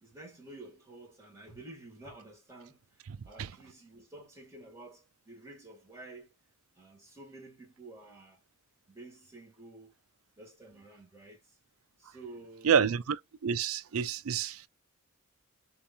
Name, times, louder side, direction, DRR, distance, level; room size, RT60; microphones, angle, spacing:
voice 1, 0.0-6.3 6.8-8.4 8.9-9.9 10.4-11.4 12.0-13.0, right 2 dB, 15° right, 2.0 m, -51 dB
voice 2, 12.6-13.2 13.4-14.6, right 7 dB, 75° right, 0.4 m, -27 dB
6.8 x 2.9 x 2.5 m
head